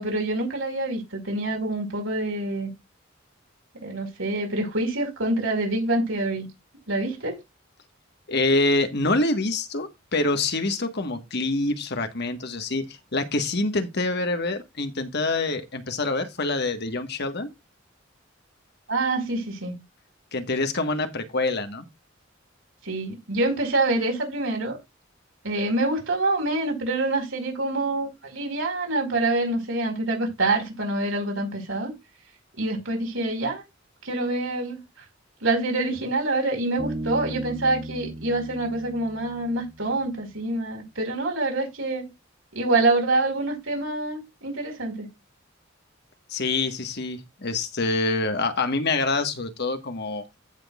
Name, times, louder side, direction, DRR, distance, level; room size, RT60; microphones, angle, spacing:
voice 1, 0.0-2.7 3.8-6.5 6.9-7.4 18.9-19.7 22.8-24.8 25.4-31.9 32.6-33.6 34.0-34.8 35.4-42.1 42.5-45.1, right 2 dB, 85° right, 5.0 m, -26 dB
voice 2, 8.3-17.5 20.3-21.8 46.3-50.4, left 2 dB, 60° left, 1.5 m, -26 dB
Bass guitar, 36.8-40.3, right 1 dB, 25° right, 3.3 m, -36 dB
15.5 x 6.2 x 2.5 m
head